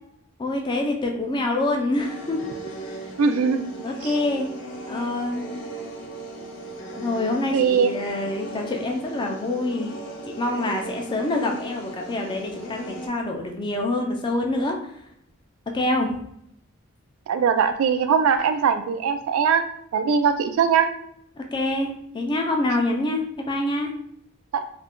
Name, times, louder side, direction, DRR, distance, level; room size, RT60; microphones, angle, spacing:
voice 1, 0.4-2.4 3.8-4.5 4.9-5.5 7.0-9.9 10.3-15.0 15.7-16.1 21.4-23.9, left 2 dB, 20° left, 2 dB, 0.4 m, -26 dB
sound 1, 1.9-13.1, right 2 dB, 70° left, 0.6 m, -37 dB
voice 2, 3.2-3.7 4.0-4.1 7.5-7.9 17.3-19.6 19.9-20.9 24.5-24.6, right 6 dB, 80° right, 9 dB, 0.3 m, -21 dB
2.4 x 2.2 x 3.5 m, 0.72 s
head